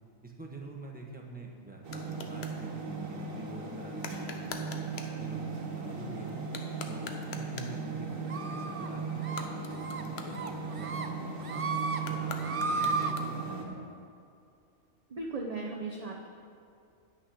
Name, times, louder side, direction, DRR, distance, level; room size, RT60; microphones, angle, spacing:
voice 1, 0.2-4.8 5.1-6.5 6.9-7.1 7.4-11.6 12.1-14.0, right 1 dB, 5° right, -1 dB, 1.1 m, -46 dB
sound 1, 0.9-2.6 4.0-5.2 6.4-7.9 9.2-11.0 12.0-13.6, left 5 dB, 55° left, 1.0 m, -45 dB
sound 2, 1.8-13.6, right 5 dB, 75° right, 1.7 m, -37 dB
sound 3, 8.3-8.9 9.2-9.4 9.8-10.0 10.3-11.1 11.4-12.0 12.3-13.1, right 4 dB, 55° right, 0.3 m, -33 dB
voice 2, 15.1-16.3, right 3 dB, 35° right, -1 dB, 0.7 m, -37 dB
9.6 x 5.8 x 8.5 m, 2.4 s
omnidirectional pair, 1.4 m